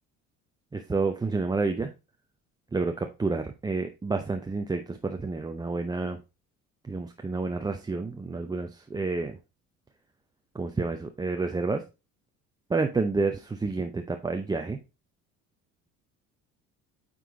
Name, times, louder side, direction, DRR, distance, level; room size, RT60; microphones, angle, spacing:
voice 1, 0.7-1.9 2.7-6.2 6.8-9.4 10.5-11.9 12.7-14.8, right 3 dB, 10° right, 5 dB, 0.6 m, -29 dB
9.1 x 3.9 x 3.7 m, 0.27 s
figure-of-eight pair, 60°, 43 cm